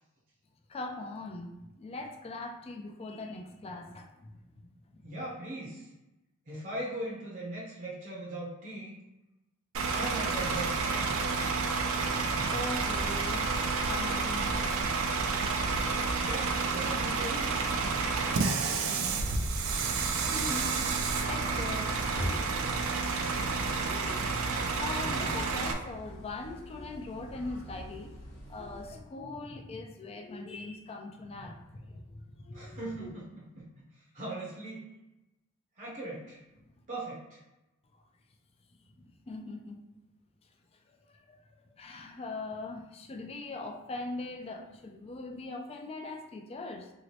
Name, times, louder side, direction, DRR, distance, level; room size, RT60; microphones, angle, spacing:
voice 1, 0.7-5.1 12.5-13.5 13.8-14.9 20.3-20.8 21.2-22.4 23.1-28.2 28.5-33.1 39.0-39.8 40.9-46.9, left 2 dB, 30° left, 3 dB, 0.3 m, -41 dB
voice 2, 5.0-5.9 6.5-9.0 9.9-11.4 12.4-12.5 16.2-17.6 32.5-33.7 34.1-34.9 35.8-36.4 36.9-37.4, right 1 dB, 40° right, -5 dB, 0.7 m, -39 dB
Bus / Idling, 9.7-25.7, right 4 dB, 85° right, 0.4 m, -30 dB
sound 1, 17.3-29.0, equal, 65° left, 1.0 m, -44 dB
2.9 x 2.8 x 3.1 m, 0.98 s
head